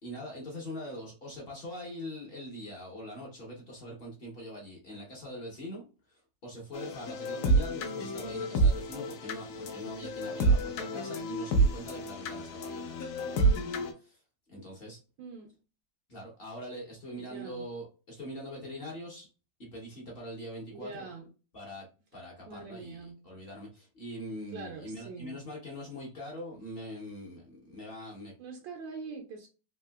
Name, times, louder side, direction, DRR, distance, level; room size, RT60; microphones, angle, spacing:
voice 1, 0.0-13.7 14.0-14.2 14.5-15.0 16.1-19.3 19.6-21.1 21.5-21.9 22.1-28.3, equal, 45° left, 0.7 m, -43 dB
sound 1, 6.7-13.9, right 3 dB, 70° left, 1.0 m, -29 dB
voice 2, 15.2-15.5 17.1-17.7 20.7-21.3 22.5-23.2 24.5-25.4 28.4-29.5, right 4 dB, 75° right, 1.3 m, -43 dB
3.7 x 2.7 x 2.2 m
omnidirectional pair, 2.1 m